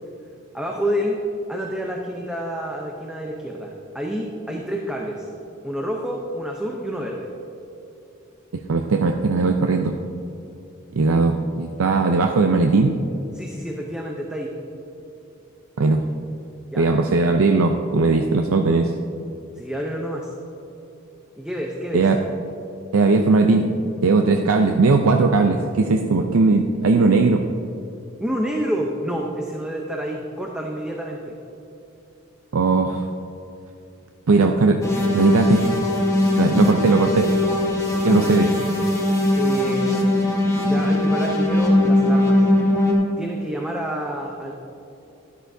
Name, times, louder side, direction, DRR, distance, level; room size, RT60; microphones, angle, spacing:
voice 1, 0.5-1.2 1.5-5.3 5.6-7.3 13.3-14.5 16.7-16.9 19.6-20.3 21.4-22.1 28.2-31.4 38.0-38.5 39.4-40.3 40.6-42.5 43.1-44.5, equal, 5° right, -1 dB, 0.7 m, -28 dB
voice 2, 8.7-10.0 10.9-13.0 15.8-16.0 16.8-18.9 21.9-22.2 22.9-23.7 24.0-27.4 32.5-33.0 34.3-34.8 35.1-35.7 36.4-37.3 38.0-38.5, right 3 dB, 85° right, 4 dB, 0.5 m, -18 dB
sound 1, 34.8-42.9, left 1 dB, 15° left, 1.7 m, -20 dB
12.5 x 12.5 x 2.7 m, 2.8 s
head